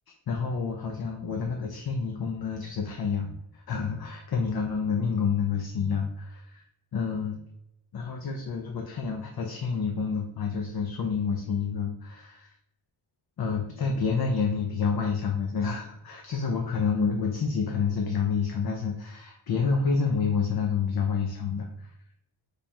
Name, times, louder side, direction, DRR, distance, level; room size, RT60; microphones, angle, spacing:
voice 1, 0.3-6.6 6.9-7.4 7.9-12.5 13.4-21.9, left 5 dB, 50° left, 1 dB, 0.5 m, -28 dB
3.3 x 2.3 x 4.2 m, 0.83 s
wide cardioid pair, 85°, 50 cm